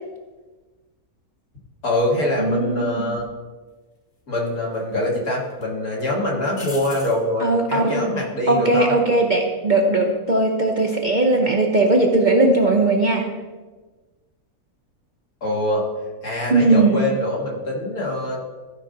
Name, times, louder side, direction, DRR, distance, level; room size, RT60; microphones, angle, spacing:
voice 1, 1.8-3.2 4.3-8.9 15.4-15.8 16.2-18.4, left 1 dB, 75° left, -4 dB, 2.7 m, -24 dB
voice 2, 2.4-3.1 7.4-8.0 8.5-13.3 16.5-17.0, right 2 dB, 40° right, 1 dB, 0.8 m, -18 dB
sound 1, 3.2-3.3 4.5-5.1 5.5-5.6 6.5-7.2 10.3-10.7, left 2 dB, 30° left, 1.4 m, -39 dB
14.5 x 5.6 x 3.9 m, 1.3 s
omnidirectional pair, 1.6 m